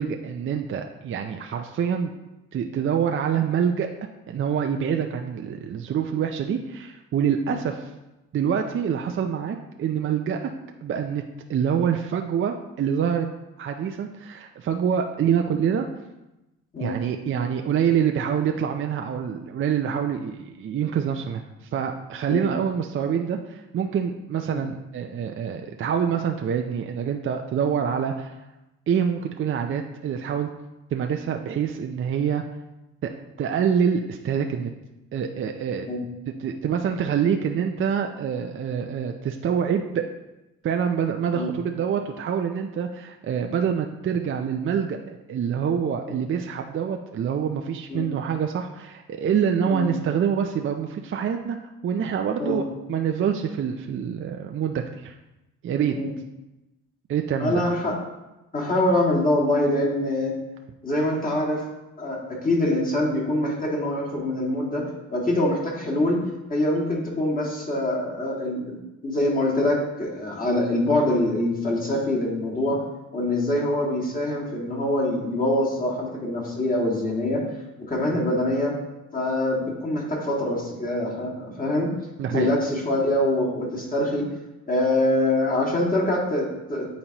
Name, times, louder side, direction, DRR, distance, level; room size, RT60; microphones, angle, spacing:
voice 1, 0.0-2.1 2.5-3.9 4.3-7.8 8.3-10.5 10.8-11.2 11.5-13.3 13.6-15.9 16.8-21.4 21.7-28.4 28.9-30.5 30.9-32.4 33.0-33.1 33.4-34.7 35.1-35.9 36.4-40.1 40.6-51.6 51.8-55.1 55.6-56.0 57.1-57.6 82.2-82.5, right 7 dB, 45° right, 4 dB, 0.5 m, -26 dB
voice 2, 57.4-58.0 58.5-60.3 60.8-61.6 62.0-68.8 69.0-72.8 73.1-77.4 77.8-78.7 79.1-81.9 82.3-84.3 84.7-86.9, left 1 dB, 30° left, -3 dB, 2.0 m, -24 dB
8.7 x 4.1 x 2.9 m, 0.99 s
cardioid pair, 90°, 30 cm